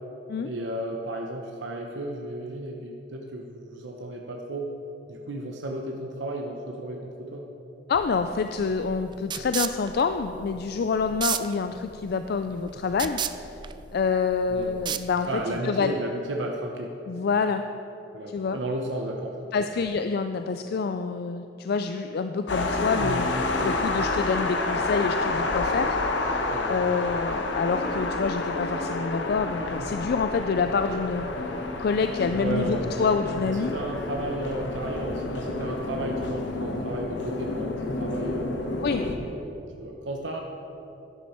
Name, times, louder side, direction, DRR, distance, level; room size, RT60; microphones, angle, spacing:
voice 1, 0.4-4.7 5.1-7.4 14.5-14.7 15.3-16.9 18.1-19.5 23.0-23.2 26.5-26.8 32.4-32.8 33.4-40.4, right 1 dB, 80° right, 1 dB, 0.9 m, -34 dB
voice 2, 7.9-13.2 13.5-13.6 13.9-15.9 17.1-17.6 18.3-18.6 19.5-23.3 23.6-26.4 26.7-31.3 31.8-33.8 38.8-39.1, left 5 dB, 60° left, 8 dB, 0.4 m, -27 dB
sound 1, 7.9-15.6, right 8 dB, 25° right, 0.3 m, -35 dB
sound 2, 22.5-39.1, left 2 dB, 85° left, 1.0 m, -29 dB
11.5 x 10.5 x 4.4 m, 3.0 s
head